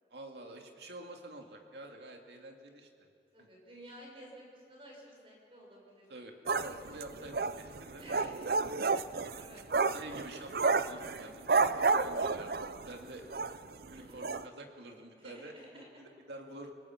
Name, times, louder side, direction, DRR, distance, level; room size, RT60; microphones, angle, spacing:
voice 1, 0.1-3.1 3.4-3.5 6.1-8.0 9.9-13.2 13.9-16.7, right 1 dB, 75° right, 3 dB, 2.2 m, -48 dB
voice 2, 3.3-6.1 8.0-8.5 8.8-8.9 9.2-9.6 13.9-14.2 15.2-15.9, equal, 30° right, -1 dB, 5.7 m, -53 dB
sound 1, 6.5-12.9 13.3-13.6 13.8-13.9 14.2-14.5, right 4 dB, 60° right, 0.6 m, -30 dB
29.0 x 19.0 x 5.9 m, 2.7 s
head